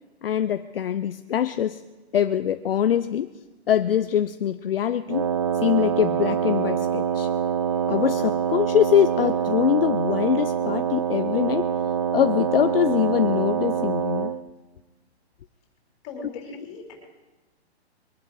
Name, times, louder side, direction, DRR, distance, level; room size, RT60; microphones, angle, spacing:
voice 1, 0.2-1.8 2.1-3.3 3.7-5.2 5.6-7.3 7.9-11.6 12.1-14.3, left 10 dB, 60° left, 10 dB, 0.6 m, -23 dB
Wind instrument woodwind instrument, 5.1-14.4, right 8 dB, 30° right, 0.4 m, -25 dB
voice 2, 16.0-16.9, left 3 dB, 25° left, 0 dB, 3.9 m, -39 dB
23.0 x 11.0 x 4.8 m, 1.2 s
hypercardioid pair, 160°, 33 cm